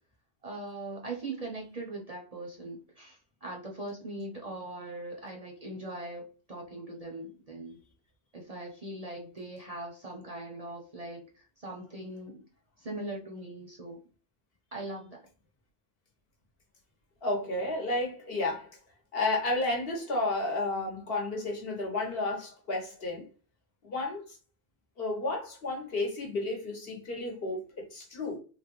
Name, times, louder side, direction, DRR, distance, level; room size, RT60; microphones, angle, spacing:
voice 1, 0.4-7.8 8.3-12.4 12.8-14.0 14.7-15.3, right 2 dB, 45° right, 0.6 m, -41 dB
voice 2, 17.2-18.7 19.1-23.3 23.8-24.4 25.0-28.4, left 2 dB, 60° left, 1.2 m, -32 dB
3.5 x 2.1 x 3.0 m
omnidirectional pair, 1.1 m